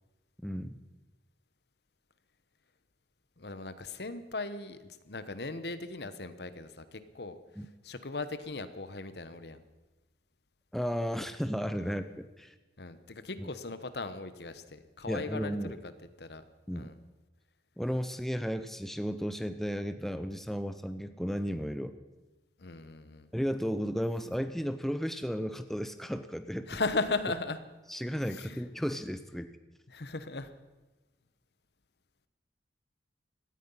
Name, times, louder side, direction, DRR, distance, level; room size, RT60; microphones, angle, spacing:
voice 1, 0.4-0.8 7.6-7.7 10.7-12.5 13.4-13.5 15.1-15.8 16.7-16.9 17.8-22.0 23.3-26.7 27.9-29.6, equal, ahead, 9 dB, 0.5 m, -34 dB
voice 2, 3.4-9.6 11.8-12.0 12.8-15.9 16.2-16.4 16.7-17.0 22.6-23.3 26.7-27.6 28.1-28.7 29.9-30.5, left 3 dB, 65° left, 12 dB, 1.0 m, -38 dB
17.0 x 13.5 x 5.6 m, 1.1 s
head